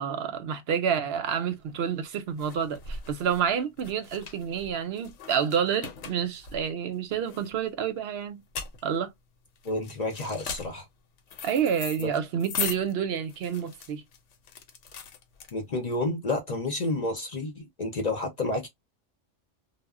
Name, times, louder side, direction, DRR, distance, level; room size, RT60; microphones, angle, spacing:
voice 1, 0.0-8.4 8.8-9.1 11.4-14.0, right 8 dB, 65° right, 0.7 m, -29 dB
sound 1, 1.6-16.0, left 6 dB, 75° left, 0.9 m, -40 dB
voice 2, 9.6-10.9 12.0-12.1 15.5-18.7, left 2 dB, 45° left, 0.6 m, -30 dB
2.1 x 2.1 x 3.5 m
omnidirectional pair, 1.3 m